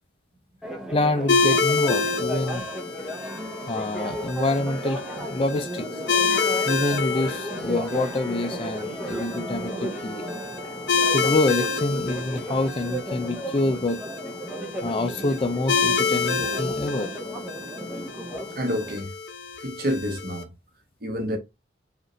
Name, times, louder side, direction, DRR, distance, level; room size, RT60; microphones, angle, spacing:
Church bell, 0.6-19.0, right 1 dB, 5° right, 0.7 m, -34 dB
voice 1, 0.9-2.7 3.7-5.9 6.7-10.2 11.1-14.0 14.8-17.2, left 2 dB, 30° left, 0.4 m, -26 dB
sound 1, 1.3-20.4, left 4 dB, 70° left, 0.7 m, -28 dB
voice 2, 18.6-19.1 19.6-20.5 21.0-21.4, equal, 55° right, 1.0 m, -28 dB
5.0 x 2.5 x 3.0 m
head